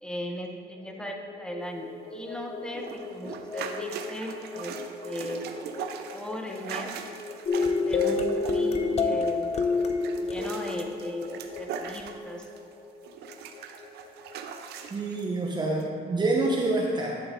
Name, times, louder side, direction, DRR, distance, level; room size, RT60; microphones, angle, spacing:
voice 1, 0.0-4.7 5.0-5.5 6.1-6.9 7.6-9.5 10.2-12.5, left 1 dB, 5° left, 2 dB, 1.1 m, -37 dB
sound 1, 0.8-14.9, left 3 dB, 80° left, 1.8 m, -42 dB
sound 2, 2.7-12.7 13.0-15.2 15.8-15.9, right 7 dB, 75° right, 0.7 m, -40 dB
sound 3, 7.5-11.9, left 4 dB, 40° left, 0.7 m, -27 dB
voice 2, 14.9-17.2, right 2 dB, 25° right, -2 dB, 1.0 m, -27 dB
11.0 x 5.9 x 3.8 m, 2.3 s
cardioid pair, 110°, 17 cm